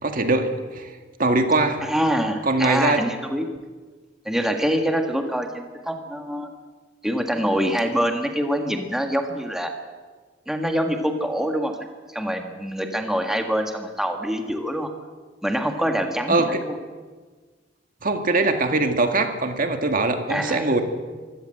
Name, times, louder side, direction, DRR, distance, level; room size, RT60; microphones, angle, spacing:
voice 1, 0.0-0.9 1.2-1.9 2.4-3.0 16.3-16.6 18.0-20.8, right 2 dB, 50° right, 6 dB, 2.0 m, -22 dB
voice 2, 1.8-3.5 4.2-6.5 7.0-9.8 10.5-11.7 12.1-14.9 15.4-16.8 20.3-20.7, equal, 5° right, 4 dB, 1.7 m, -25 dB
24.5 x 16.5 x 7.8 m, 1.4 s
head